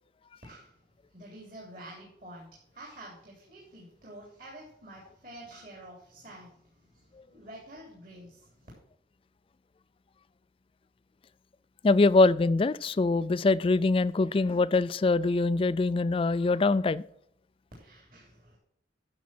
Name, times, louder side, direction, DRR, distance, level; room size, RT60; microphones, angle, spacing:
voice 1, 1.1-2.5 2.7-7.0 7.3-8.7 17.8-18.6, right 1 dB, 50° right, -3 dB, 3.3 m, -48 dB
voice 2, 11.8-17.0, left 3 dB, 30° left, 18 dB, 0.3 m, -23 dB
12.0 x 7.2 x 4.4 m, 0.71 s
head